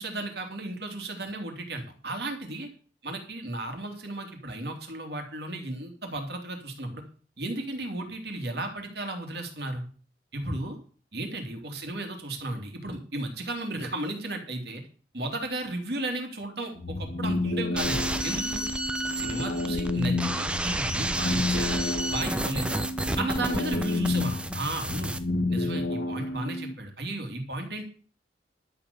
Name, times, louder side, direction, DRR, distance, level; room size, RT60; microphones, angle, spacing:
voice 1, 0.0-2.7 3.0-7.0 7.4-9.8 10.3-10.8 11.1-14.8 15.1-18.7 19.2-22.9 23.2-25.1 25.5-27.8, right 2 dB, 60° right, 4 dB, 3.0 m, -34 dB
sound 1, 16.7-26.7, left 2 dB, 80° left, 2.0 m, -30 dB
sound 2, 17.8-25.2, right 1 dB, 5° right, 0.7 m, -31 dB
12.0 x 7.0 x 7.0 m, 0.40 s
head